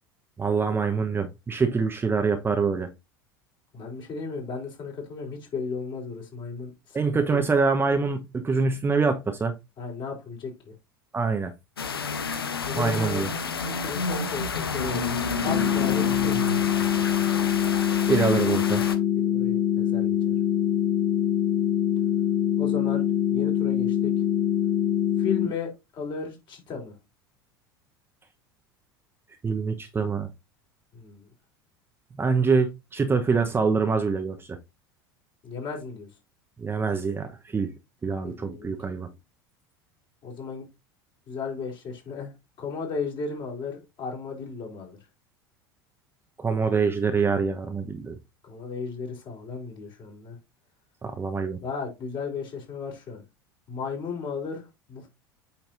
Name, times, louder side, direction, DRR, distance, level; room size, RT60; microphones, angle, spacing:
voice 1, 0.4-2.9 6.9-9.5 11.1-11.5 12.7-13.3 18.1-18.8 29.4-30.3 32.2-34.6 36.6-37.7 38.0-39.1 46.4-48.2 51.0-51.6, right 4 dB, 20° right, 1.0 m, -25 dB
voice 2, 3.7-7.5 9.8-10.7 12.6-13.3 13.6-15.2 15.4-16.5 19.2-20.3 22.6-24.1 25.2-26.9 30.9-31.3 35.4-36.1 38.2-38.7 40.2-40.7 41.3-42.3 42.6-45.0 48.4-50.4 51.6-53.2 53.7-55.1, left 5 dB, 40° left, 4.0 m, -35 dB
sound 1, 11.8-19.0, left 4 dB, 80° left, 0.9 m, -30 dB
sound 2, 15.5-25.5, left 10 dB, 65° left, 2.6 m, -24 dB
8.7 x 5.8 x 2.6 m
figure-of-eight pair, 75°, 12 cm